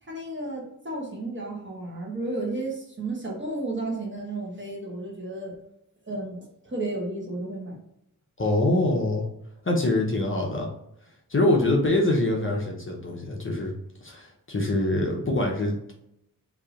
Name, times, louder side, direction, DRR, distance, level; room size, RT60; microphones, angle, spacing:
voice 1, 0.0-5.5 6.0-6.4 6.6-7.8 10.3-10.4, right 2 dB, 30° right, -2 dB, 1.2 m, -33 dB
voice 2, 8.4-9.2 9.6-10.7 11.3-13.7 14.0-15.9, left 1 dB, 35° left, -1 dB, 0.8 m, -24 dB
3.2 x 2.8 x 3.8 m, 0.80 s
wide cardioid pair, 105°, 36 cm